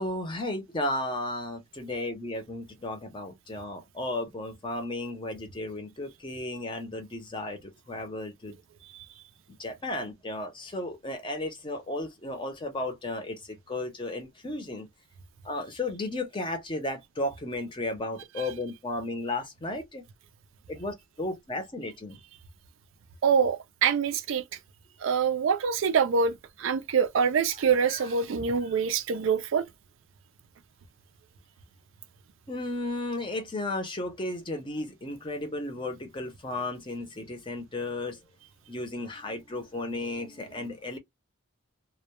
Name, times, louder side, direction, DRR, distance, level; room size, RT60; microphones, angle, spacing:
voice 1, 0.0-8.6 9.6-14.9 15.4-20.0 20.7-22.2 27.9-28.1 32.5-38.2 38.7-41.0, left 2 dB, 25° left, 0.6 m, -34 dB
voice 2, 23.2-24.4 25.0-26.3 26.6-29.6, right 6 dB, 65° right, 0.4 m, -25 dB
2.2 x 2.1 x 2.9 m
head